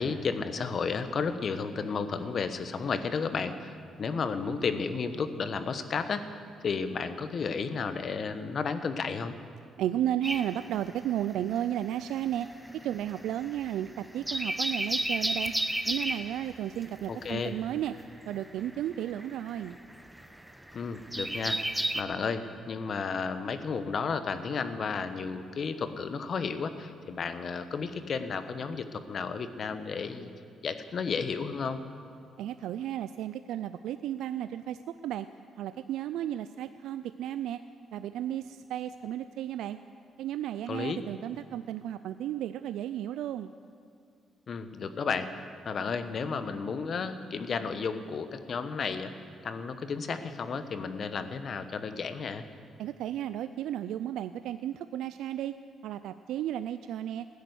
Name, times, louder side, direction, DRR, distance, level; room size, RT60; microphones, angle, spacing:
voice 1, 0.0-6.4 6.6-9.3 17.1-17.5 20.7-21.6 21.9-30.3 30.6-31.8 40.7-41.0 44.5-45.3 45.6-49.1 49.4-52.4, left 5 dB, 50° left, 10 dB, 1.0 m, -33 dB
voice 2, 9.8-12.5 12.8-15.5 15.9-18.0 18.3-19.8 32.4-35.3 35.6-37.6 37.9-39.8 40.2-43.5 52.8-55.5 55.8-57.3, right 11 dB, 85° right, 12 dB, 0.3 m, -33 dB
sound 1, 10.2-11.7 11.9-22.0, right 1 dB, 5° right, 0.8 m, -33 dB
15.5 x 10.5 x 8.0 m, 2.3 s
cardioid pair, 90°, 0 cm